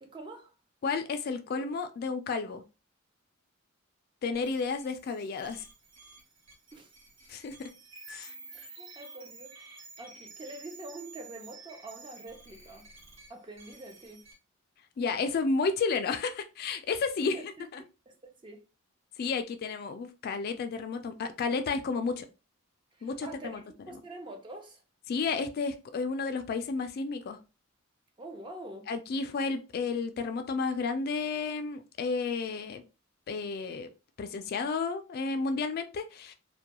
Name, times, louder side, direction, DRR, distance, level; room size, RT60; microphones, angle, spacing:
voice 1, 0.0-0.5 6.7-6.9 7.2-7.3 8.5-12.9 13.3-14.3 17.2-17.7 18.1-18.2 18.4-18.6 22.9-23.6 23.9-24.8 28.2-28.9, right 2 dB, 25° right, 0.4 m, -45 dB
voice 2, 0.8-2.6 4.2-5.7 7.3-7.6 8.1-8.3 15.0-17.8 19.2-22.3 23.0-23.6 25.1-27.4 28.9-32.8 33.3-33.9 34.2-36.3, left 4 dB, 45° left, 0.3 m, -32 dB
sound 1, 4.3-14.3, right 4 dB, 65° right, 0.9 m, -51 dB
2.2 x 2.2 x 2.8 m
head